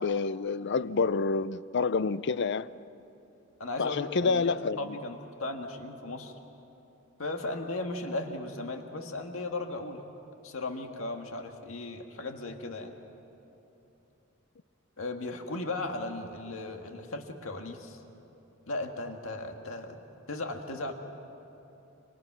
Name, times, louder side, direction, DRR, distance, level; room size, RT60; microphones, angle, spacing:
voice 1, 0.0-2.7 3.8-4.9, left 4 dB, 55° left, 0.5 m, -28 dB
voice 2, 3.6-6.4 7.2-10.1 10.4-12.9 15.0-18.0 18.7-20.0 20.3-20.9, left 2 dB, 75° left, 1.9 m, -36 dB
29.5 x 26.5 x 6.1 m
head